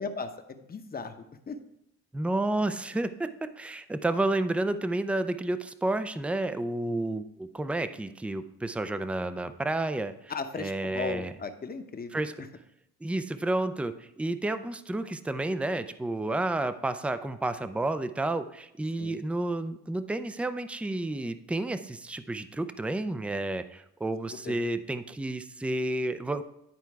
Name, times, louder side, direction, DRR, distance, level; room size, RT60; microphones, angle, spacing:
voice 1, 0.0-1.6 10.3-12.1 19.0-19.2 24.4-24.6, left 4 dB, 30° left, 8 dB, 0.9 m, -37 dB
voice 2, 2.1-11.3 12.1-12.3 13.0-26.4, right 2 dB, 5° right, 11 dB, 0.4 m, -31 dB
10.5 x 4.5 x 4.7 m, 0.80 s
cardioid pair, 90°, 30 cm